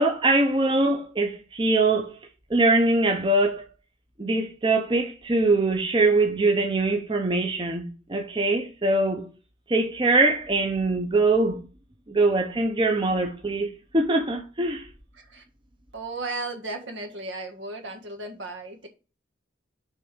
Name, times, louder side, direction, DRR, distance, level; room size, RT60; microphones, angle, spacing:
voice 1, 0.0-2.2 2.5-3.7 4.2-9.3 9.7-11.6 12.1-14.9, right 2 dB, 25° right, 0.8 m, -23 dB
voice 2, 15.9-18.9, right 2 dB, 75° right, 1.7 m, -35 dB
6.8 x 3.5 x 6.1 m
head